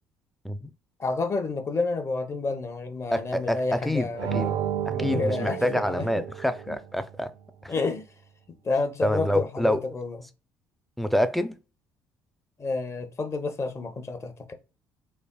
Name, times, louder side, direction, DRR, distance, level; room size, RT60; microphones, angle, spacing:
voice 1, 1.0-6.1 6.7-6.8 7.7-8.1 8.5-10.2 12.6-14.5, left 3 dB, 30° left, 0.7 m, -30 dB
voice 2, 3.1-4.5 4.9-7.3 7.6-7.7 9.0-9.8 11.0-11.6, left 1 dB, ahead, 0.4 m, -27 dB
sound 1, 4.2-6.9, right 9 dB, 65° right, 0.4 m, -31 dB
3.3 x 2.4 x 2.2 m
hypercardioid pair, 65°, 9 cm